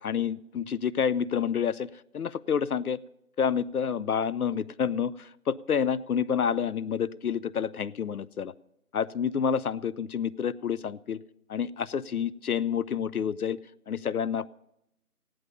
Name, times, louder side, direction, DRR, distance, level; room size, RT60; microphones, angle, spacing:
voice 1, 0.0-3.0 3.4-8.5 8.9-11.2 11.5-13.6 13.9-14.5, left 7 dB, 75° left, 18 dB, 0.5 m, -29 dB
16.0 x 10.0 x 6.6 m, 0.84 s
figure-of-eight pair, 180°, 45 cm